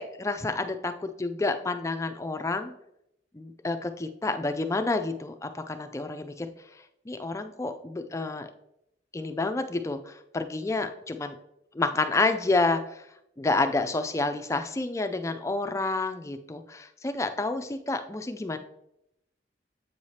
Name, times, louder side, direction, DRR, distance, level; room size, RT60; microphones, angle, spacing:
voice 1, 0.0-2.7 3.3-6.5 7.1-8.5 9.1-11.4 11.7-13.0 13.4-18.6, left 3 dB, 15° left, 8 dB, 0.3 m, -29 dB
7.9 x 4.8 x 2.8 m, 0.81 s
head